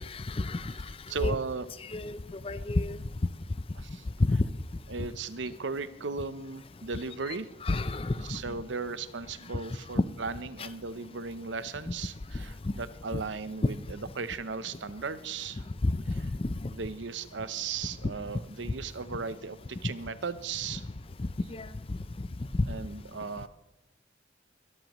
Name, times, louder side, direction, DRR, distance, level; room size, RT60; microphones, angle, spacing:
voice 1, 0.1-0.7 1.2-1.4 1.9-2.2 2.4-3.0 4.3-4.4 7.6-8.1 15.8-16.0 16.4-16.5 21.5-21.7, left 2 dB, 30° left, 15 dB, 0.5 m, -29 dB
voice 2, 1.1-1.7 3.7-4.0 4.9-7.5 8.2-15.6 16.1-16.3 16.7-20.9 22.7-23.5, right 4 dB, 75° right, 14 dB, 0.7 m, -36 dB
22.0 x 13.0 x 3.1 m, 0.93 s
head